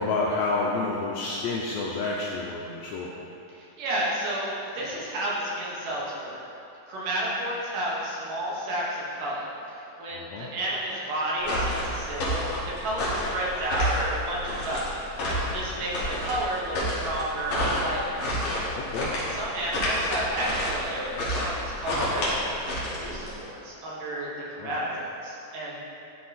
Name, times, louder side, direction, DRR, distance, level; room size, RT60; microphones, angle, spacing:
voice 1, 0.0-3.1 10.1-10.5 15.8-15.9 18.7-19.1 24.6-24.7, left 3 dB, 85° left, -3 dB, 1.6 m, -29 dB
voice 2, 3.5-4.5 4.7-6.4 6.9-12.5 12.8-18.2 19.3-24.3 24.6-25.8, right 1 dB, 80° right, -6 dB, 3.0 m, -31 dB
sound 1, 11.4-23.4, equal, 50° left, 1.9 m, -29 dB
11.0 x 3.8 x 4.2 m, 2.7 s
omnidirectional pair, 3.7 m